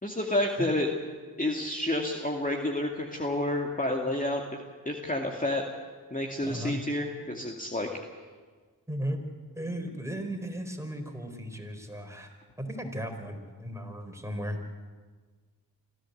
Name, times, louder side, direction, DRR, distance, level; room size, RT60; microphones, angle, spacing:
voice 1, 0.0-0.9 1.4-4.4 4.9-5.6 6.1-7.9, left 1 dB, 20° left, 1 dB, 2.4 m, -29 dB
voice 2, 6.4-6.8 8.9-9.2 9.5-14.6, equal, 5° right, 3 dB, 4.6 m, -36 dB
25.5 x 14.0 x 8.0 m, 1.5 s
supercardioid pair, 40°, 44 cm